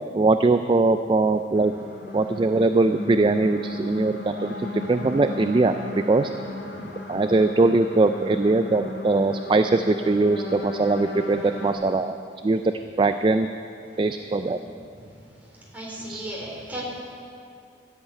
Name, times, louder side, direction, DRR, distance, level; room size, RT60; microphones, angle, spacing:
voice 1, 0.0-1.7 2.1-5.7 6.1-6.3 6.8-12.2 12.4-12.7 13.0-13.5 14.0-14.6 16.1-16.2, right 3 dB, 25° right, 8 dB, 0.3 m, -21 dB
sound 1, 1.5-11.7, left 2 dB, 80° left, 2.2 m, -35 dB
voice 2, 15.7-16.8, right 1 dB, 10° right, -5 dB, 3.5 m, -35 dB
13.5 x 8.0 x 9.1 m, 2.5 s
head